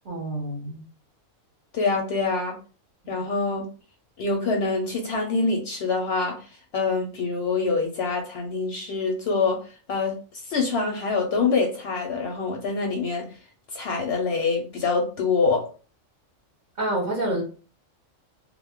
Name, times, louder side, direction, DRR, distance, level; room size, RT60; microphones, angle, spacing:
voice 1, 0.0-0.8 16.8-17.4, right 1 dB, 40° right, -2 dB, 0.8 m, -27 dB
voice 2, 1.7-2.5 3.1-3.6 4.2-6.4 6.7-9.6 9.9-10.1 10.5-13.2 13.7-15.6, left 4 dB, 60° left, 1 dB, 0.7 m, -25 dB
2.5 x 2.3 x 3.5 m, 0.38 s
omnidirectional pair, 1.4 m